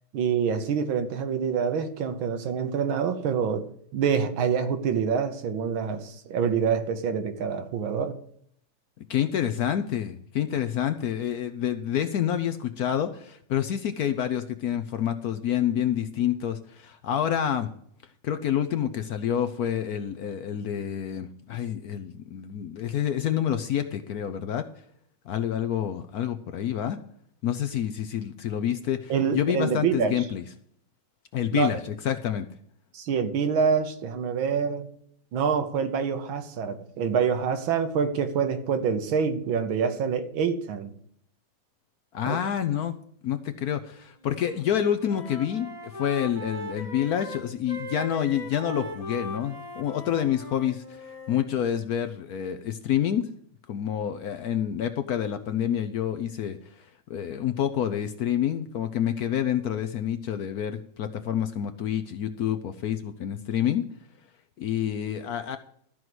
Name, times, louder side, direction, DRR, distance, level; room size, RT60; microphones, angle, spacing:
voice 1, 0.1-3.7 3.9-8.2 29.1-30.3 31.5-31.7 32.9-34.9 35.3-40.9 42.3-42.4, right 6 dB, 75° right, 1.7 m, -26 dB
voice 2, 9.0-17.7 18.2-24.7 25.3-27.0 27.4-30.4 31.3-31.8 32.0-32.5 42.1-43.0 43.2-51.0 51.3-53.2 53.7-56.6 57.1-63.8 64.6-65.6, left 10 dB, 70° left, 0.9 m, -28 dB
Wind instrument woodwind instrument, 44.2-44.6 44.9-51.5, left 1 dB, 15° left, 2.0 m, -39 dB
13.5 x 4.7 x 7.8 m
omnidirectional pair, 2.2 m